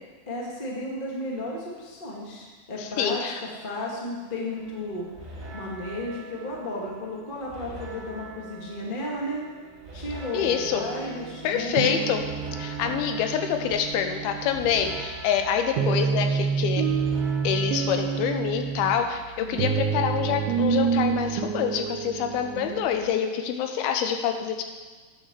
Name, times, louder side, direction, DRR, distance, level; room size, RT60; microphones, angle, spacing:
voice 1, 0.3-5.0 5.5-9.4 9.9-12.0 12.8-12.9 13.6-13.7 19.4-19.6, left 1 dB, 55° left, -3 dB, 0.5 m, -34 dB
voice 2, 2.8-3.4 10.3-10.9 11.4-12.2 12.6-16.8 17.4-24.6, left 8 dB, 80° left, 6 dB, 2.6 m, -26 dB
sound 1, 4.5-18.5, right 1 dB, 25° right, 2.6 m, -44 dB
sound 2, 10.6-22.9, right 6 dB, 80° right, 2.2 m, -28 dB
9.5 x 6.5 x 6.7 m, 1.4 s
omnidirectional pair, 4.4 m